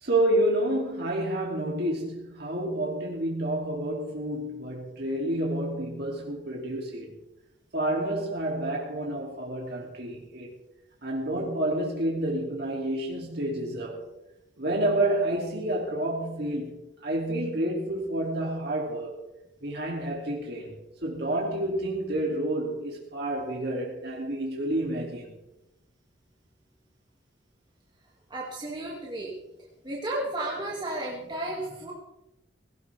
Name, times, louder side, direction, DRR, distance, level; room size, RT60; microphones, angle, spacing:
voice 1, 0.0-7.1 7.7-10.5 11.0-14.0 14.6-16.7 17.0-19.2 19.6-20.8 21.0-25.3, right 1 dB, 60° right, 2.7 m, -29 dB
voice 2, 28.3-29.3 29.8-31.9, right 1 dB, 25° right, 2.3 m, -33 dB
17.5 x 17.0 x 3.5 m
head